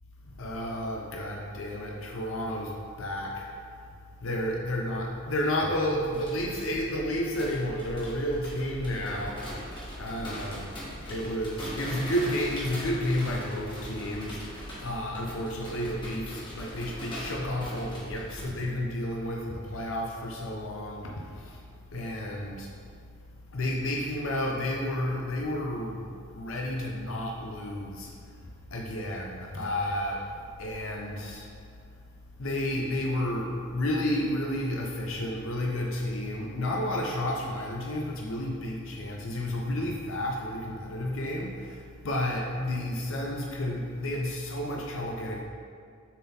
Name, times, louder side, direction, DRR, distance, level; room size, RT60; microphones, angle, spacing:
voice 1, 0.4-3.5 4.2-9.5 10.0-10.8 11.1-21.6 21.9-22.7 23.5-26.1 26.3-28.1 28.7-30.2 30.6-31.5 32.4-45.4, left 1 dB, 70° left, -1 dB, 0.7 m, -31 dB
sound 1, 5.9-18.4, equal, 20° left, 1.4 m, -40 dB
7.0 x 3.8 x 4.3 m, 2.2 s
head